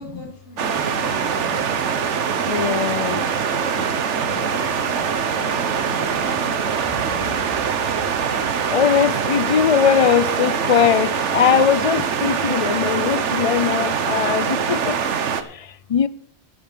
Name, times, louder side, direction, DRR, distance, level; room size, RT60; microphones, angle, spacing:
voice 1, 0.0-0.8 3.2-6.3, left 1 dB, 75° left, 3.6 m, -41 dB
sound 1, 0.6-15.4, right 7 dB, 90° right, 1.3 m, -23 dB
voice 2, 1.0-1.9 2.4-3.3 4.3-4.4 5.3-7.4 8.7-16.1, left 8 dB, 55° left, 0.3 m, -22 dB
sound 2, 1.4-12.6, left 2 dB, 30° left, 1.8 m, -47 dB
sound 3, 6.7-10.6, right 2 dB, 60° right, 2.8 m, -44 dB
9.9 x 9.6 x 6.0 m
omnidirectional pair, 1.2 m